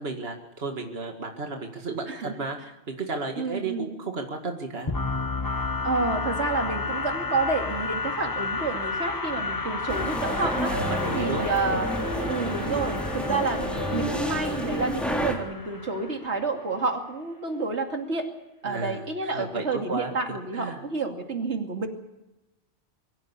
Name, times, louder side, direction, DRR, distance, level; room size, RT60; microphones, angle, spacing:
voice 1, 0.0-2.6 2.9-4.9 10.3-12.4 18.6-20.8, right 3 dB, 65° right, 3 dB, 2.3 m, -34 dB
voice 2, 3.4-3.9 5.8-10.7 11.1-11.9 12.3-18.3 18.6-21.9, right 3 dB, 85° right, 4 dB, 2.8 m, -29 dB
sound 1, 4.9-16.6, left 3 dB, 20° left, 0.8 m, -32 dB
sound 2, 9.9-15.3, equal, ahead, 3.6 m, -30 dB
23.5 x 15.0 x 8.4 m, 1.0 s
omnidirectional pair, 1.1 m